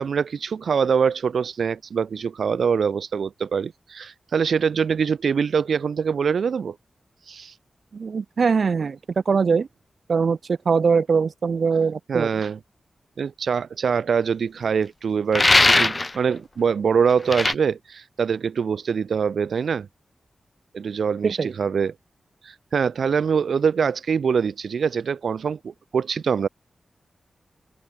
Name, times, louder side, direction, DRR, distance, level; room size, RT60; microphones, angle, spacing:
voice 1, 0.0-6.8 7.3-7.5 12.1-12.6 13.2-19.9 20.7-21.9 22.4-26.5, right 6 dB, 85° right, 1.8 m, -24 dB
voice 2, 7.9-9.0 9.3-9.7 10.1-12.3 21.2-21.5, right 5 dB, 60° right, 2.2 m, -21 dB
sound 1, 15.3-16.1 17.3-17.5, left 2 dB, 25° left, 1.2 m, -18 dB
open air
wide cardioid pair, 135°, 0 cm